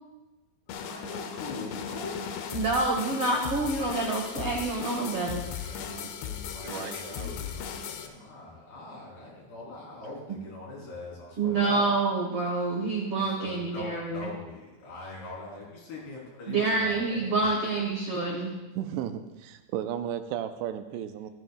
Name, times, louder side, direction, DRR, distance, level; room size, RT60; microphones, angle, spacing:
sound 1, 0.7-8.1, left 8 dB, 90° left, 3.1 m, -37 dB
voice 1, 0.7-2.3 5.6-11.9 13.1-17.5, left 2 dB, 75° left, -5 dB, 5.8 m, -42 dB
voice 2, 2.5-5.8 11.4-14.3 16.5-18.6, right 3 dB, 70° right, -1 dB, 1.3 m, -27 dB
voice 3, 6.6-7.3 18.8-21.3, right 10 dB, 90° right, 8 dB, 2.8 m, -34 dB
16.0 x 14.0 x 2.4 m, 1.1 s
omnidirectional pair, 4.9 m